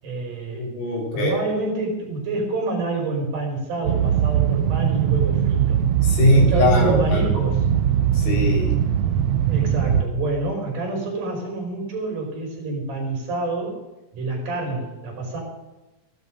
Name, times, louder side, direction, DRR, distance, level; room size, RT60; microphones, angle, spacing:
voice 1, 0.0-0.7 1.1-5.8 6.3-7.6 9.5-13.8 14.1-15.4, right 2 dB, 65° right, 0 dB, 6.8 m, -27 dB
voice 2, 0.5-1.4 6.0-7.2 8.1-8.8, left 1 dB, 90° left, -1 dB, 5.3 m, -21 dB
sound 1, 3.8-10.0, right 9 dB, 85° right, 1.3 m, -21 dB
16.5 x 12.5 x 5.4 m, 0.98 s
omnidirectional pair, 4.0 m